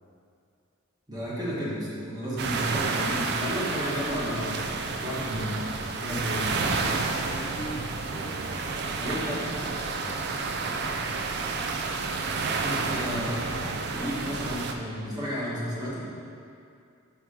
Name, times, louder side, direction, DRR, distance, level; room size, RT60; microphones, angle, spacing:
voice 1, 1.1-4.7 5.0-5.7 5.9-6.6 9.0-9.4 12.6-16.0, equal, 20° right, -7 dB, 1.4 m, -32 dB
sound 1, 2.4-14.7, right 4 dB, 55° right, 0.4 m, -30 dB
voice 2, 7.1-9.0 10.0-10.2 10.6-10.8, equal, 20° left, -3 dB, 0.3 m, -42 dB
4.8 x 4.6 x 5.1 m, 2.4 s
head